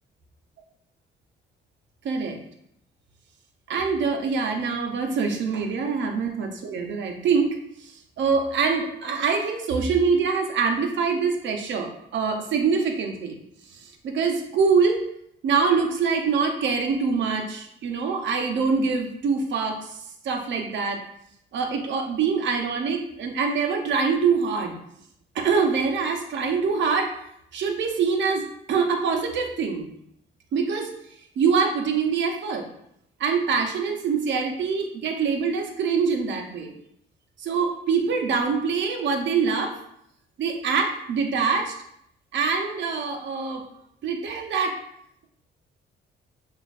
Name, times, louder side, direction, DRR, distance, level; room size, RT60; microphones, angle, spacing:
voice 1, 2.0-2.4 3.7-13.4 13.7-15.1 15.4-20.0 20.2-21.0 21.5-24.7 25.3-27.1 27.5-29.9 30.5-30.9 31.4-32.7 33.2-36.7 37.4-39.8 40.4-41.7 42.3-43.6 44.0-44.8, right 5 dB, 65° right, 4 dB, 0.7 m, -24 dB
5.9 x 2.5 x 2.5 m, 0.74 s
cardioid pair, 90°, 20 cm